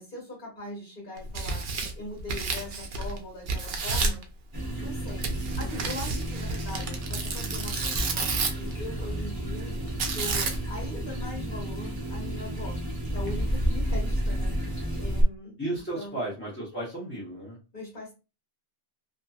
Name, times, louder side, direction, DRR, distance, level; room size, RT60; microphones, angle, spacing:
voice 1, 0.0-4.2 4.8-5.3 5.6-9.7 10.1-12.8 13.1-15.6 15.9-16.1 17.7-18.1, left 2 dB, 55° left, -4 dB, 1.5 m, -41 dB
Tearing, 1.2-3.2 3.5-4.2 5.2-8.7 10.0-10.8, right 4 dB, 75° right, 0.8 m, -30 dB
sound 1, 4.5-15.2, right 1 dB, 25° right, 0.6 m, -31 dB
voice 2, 15.6-17.6, right 2 dB, 10° left, -7 dB, 0.9 m, -34 dB
2.8 x 2.6 x 2.4 m, 0.30 s
omnidirectional pair, 1.0 m